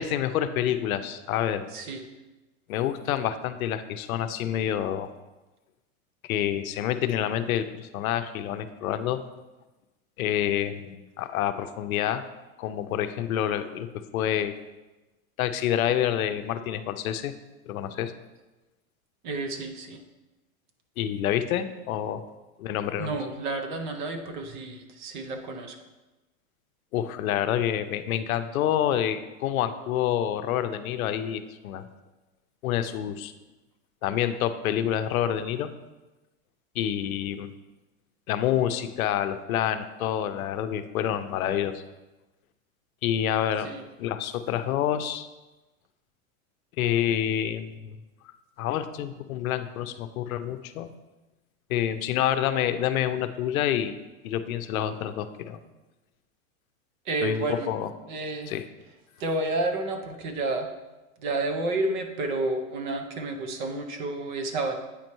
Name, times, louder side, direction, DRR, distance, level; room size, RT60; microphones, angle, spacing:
voice 1, 0.0-1.6 2.7-5.1 6.2-9.2 10.2-12.2 12.6-14.5 15.4-17.3 17.7-18.1 21.0-22.2 22.6-23.2 26.9-31.8 32.6-33.3 34.0-35.7 36.8-37.5 38.3-41.8 43.0-43.7 44.0-45.3 46.8-48.0 48.6-50.9 51.7-53.9 54.2-55.6 57.2-57.9 58.5-58.7, left 10 dB, 80° left, 10 dB, 0.6 m, -28 dB
voice 2, 1.7-2.0 19.2-20.0 23.0-25.8 43.6-43.8 57.1-57.7 58.1-58.5 59.2-60.7 61.2-64.8, right 2 dB, 35° right, 5 dB, 0.6 m, -30 dB
8.4 x 3.0 x 5.3 m, 1.1 s
supercardioid pair, 170°, 41 cm